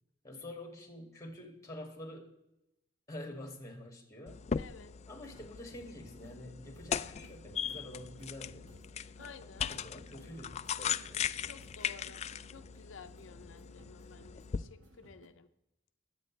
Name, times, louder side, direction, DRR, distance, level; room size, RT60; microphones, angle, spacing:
voice 1, 0.2-2.3 3.1-4.4 5.1-8.7 9.7-11.6, left 1 dB, 15° left, 4 dB, 2.2 m, -47 dB
sound 1, 4.3-14.6, left 7 dB, 35° left, 0.3 m, -39 dB
voice 2, 4.6-4.9 9.2-9.7 11.4-12.2 12.5-15.5, left 5 dB, 85° left, 8 dB, 0.6 m, -53 dB
sound 2, 5.2-15.3, equal, 80° right, 2.0 m, -59 dB
21.5 x 8.4 x 3.3 m, 0.89 s
head